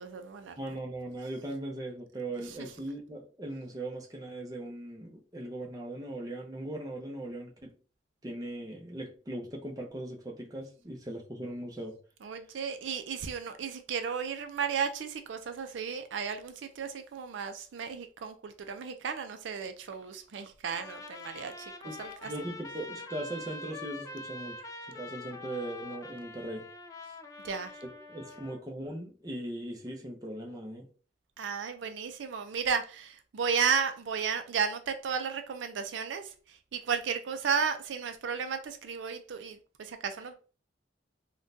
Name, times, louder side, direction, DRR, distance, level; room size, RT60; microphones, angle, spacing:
voice 1, 0.0-0.6 12.2-21.7 22.0-22.3 27.4-27.7 31.4-36.3 36.7-40.3, right 6 dB, 80° right, 0.4 m, -34 dB
voice 2, 0.6-7.7 8.2-12.0 21.8-22.0 22.2-26.7 27.8-30.9, right 1 dB, 20° right, 0.6 m, -39 dB
Trumpet, 20.7-28.6, left 2 dB, 20° left, 0.3 m, -45 dB
3.6 x 2.2 x 2.6 m
head